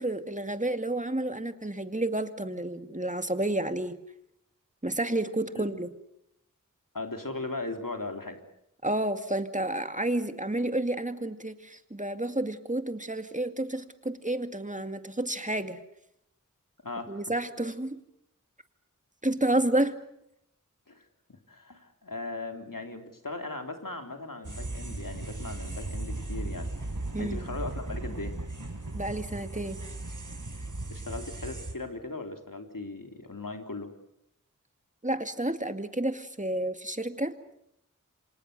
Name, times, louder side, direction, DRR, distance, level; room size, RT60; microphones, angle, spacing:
voice 1, 0.0-4.0 4.8-5.9 8.8-15.8 17.1-18.0 19.2-20.0 27.1-27.4 28.9-29.8 35.0-37.3, right 1 dB, 25° right, 8 dB, 2.3 m, -30 dB
voice 2, 6.9-8.4 16.8-17.2 20.9-21.0 21.3-26.7 27.2-28.4 30.9-33.9, left 3 dB, 90° left, 5 dB, 3.5 m, -38 dB
sound 1, 24.4-31.7, right 2 dB, 70° right, 4.6 m, -37 dB
28.5 x 26.0 x 6.7 m, 0.77 s
wide cardioid pair, 40°, 32 cm